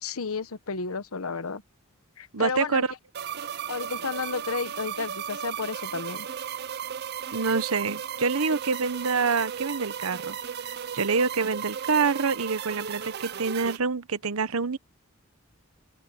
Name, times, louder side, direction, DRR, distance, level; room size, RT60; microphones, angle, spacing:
voice 1, 0.0-1.6 2.2-2.9 3.7-6.3, left 4 dB, 75° left, 1.1 m, -32 dB
voice 2, 2.3-2.9 7.3-10.4 10.9-14.8, right 4 dB, 80° right, 1.0 m, -26 dB
sound 1, 3.1-13.8, right 8 dB, 50° right, 0.6 m, -35 dB
open air
head